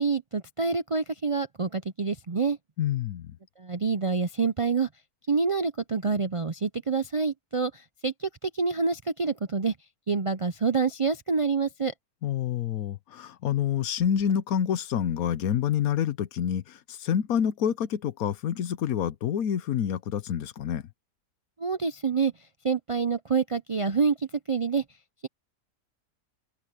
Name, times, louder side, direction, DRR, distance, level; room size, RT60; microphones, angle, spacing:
voice 1, 0.0-2.6 3.6-4.9 5.3-9.7 10.1-11.9 21.6-22.3 22.6-24.8, right 5 dB, 45° right, 0.4 m, -27 dB
voice 2, 2.8-3.3 12.2-20.8, left 9 dB, 85° left, 1.3 m, -27 dB
omnidirectional pair, 1.5 m